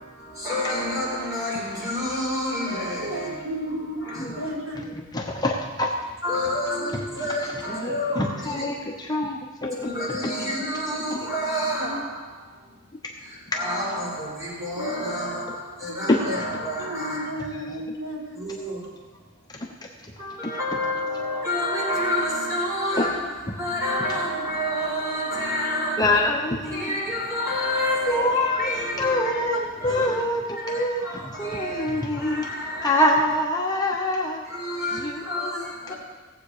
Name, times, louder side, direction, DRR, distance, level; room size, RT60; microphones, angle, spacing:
voice 1, 0.4-3.3 4.0-4.2 6.2-8.6 9.8-12.0 13.5-15.5 15.8-17.3 18.4-18.8 20.2-23.2 23.6-26.1 26.7-29.2 29.8-30.1 31.1-31.2 31.4-31.9 32.2-33.1 34.5-35.6 35.9-36.0, left 1 dB, 15° right, 4.8 m, -28 dB
voice 2, 3.0-5.0 8.6-8.8 11.8-12.1 14.6-15.2 15.7-16.1 16.8-18.4, equal, 85° right, 2.0 m, -34 dB
voice 3, 4.7-5.9 7.7-10.3 11.1-11.2 16.1-16.2 17.4-17.8 26.0-27.0 28.1-28.7 29.0-32.4 32.8-34.4 34.9-35.9, left 1 dB, 20° left, 1.0 m, -25 dB
17.5 x 8.0 x 5.0 m
head